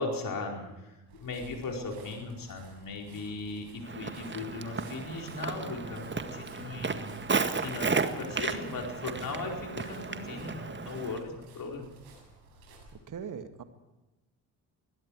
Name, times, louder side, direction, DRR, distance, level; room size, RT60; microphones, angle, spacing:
voice 1, 0.0-11.9, left 3 dB, 40° left, 1 dB, 4.8 m, -38 dB
sound 1, 1.1-13.0, right 3 dB, 65° right, 7.4 m, -55 dB
Walk footsteps, 3.8-11.2, right 4 dB, 25° right, 1.9 m, -34 dB
voice 2, 12.9-13.6, right 7 dB, 40° right, 9 dB, 2.2 m, -40 dB
26.5 x 21.0 x 4.8 m, 1.0 s
figure-of-eight pair, 45°, 49 cm